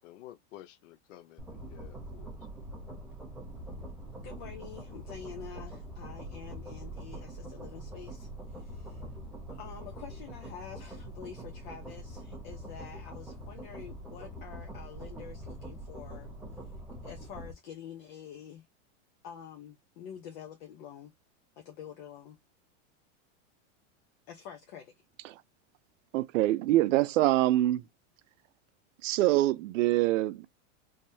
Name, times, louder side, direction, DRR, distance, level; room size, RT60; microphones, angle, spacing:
voice 1, 0.0-2.3, left 13 dB, 80° left, 0.6 m, -51 dB
sound 1, 1.4-17.5, right 1 dB, 5° right, 1.0 m, -44 dB
voice 2, 4.2-9.0 9.5-16.3 16.5-16.6 17.0-18.6 19.2-21.1 21.6-22.4 24.3-24.9, left 8 dB, 50° left, 1.0 m, -47 dB
voice 3, 26.1-27.8 29.0-30.5, right 15 dB, 85° right, 0.6 m, -25 dB
3.6 x 3.1 x 2.7 m
supercardioid pair, 145°, 37 cm